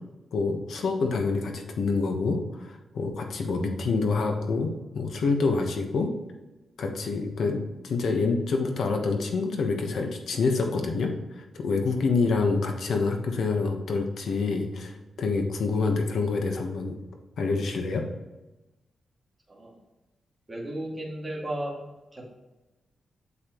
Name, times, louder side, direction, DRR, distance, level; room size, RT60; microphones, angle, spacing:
voice 1, 0.3-6.1 6.8-11.1 11.5-14.9 15.2-17.0 17.4-18.0, left 4 dB, 70° left, 4 dB, 1.1 m, -27 dB
voice 2, 20.5-21.8 22.1-22.3, right 1 dB, 15° right, -4 dB, 2.3 m, -34 dB
8.3 x 7.3 x 3.0 m, 1.1 s
wide cardioid pair, 165°, 0 cm